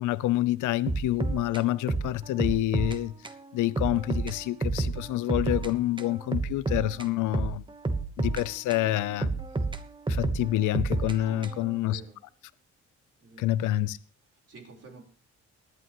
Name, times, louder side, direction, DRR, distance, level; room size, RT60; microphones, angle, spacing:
voice 1, 0.0-3.1 3.5-7.6 8.2-9.3 10.1-12.0 13.4-14.0, left 15 dB, 85° left, 0.6 m, -27 dB
sound 1, 0.9-3.0 3.2-3.4 3.8-5.7 6.0-8.9 9.2-11.8, right 3 dB, 15° right, 1.0 m, -30 dB
voice 2, 11.2-12.2 13.2-13.8 14.5-15.0, right 3 dB, 50° right, 4.1 m, -49 dB
19.0 x 11.0 x 3.0 m
cardioid pair, 90°, 30 cm